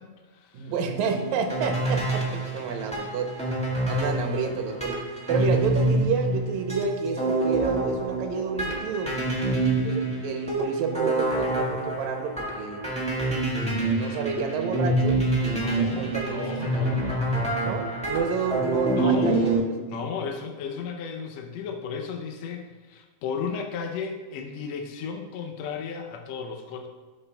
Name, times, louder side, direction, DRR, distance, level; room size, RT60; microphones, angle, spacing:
voice 1, 0.0-0.7 5.4-5.6 15.5-18.5 19.0-19.5 19.9-26.9, left 6 dB, 75° left, 4 dB, 1.7 m, -35 dB
voice 2, 0.5-3.3 3.8-9.2 9.8-12.8 13.7-15.2 15.6-17.0 17.6-20.1, right 6 dB, 80° right, 5 dB, 2.1 m, -30 dB
sound 1, 0.9-19.6, right 2 dB, 10° left, 0.3 m, -27 dB
11.0 x 6.9 x 2.3 m, 1.4 s
omnidirectional pair, 3.5 m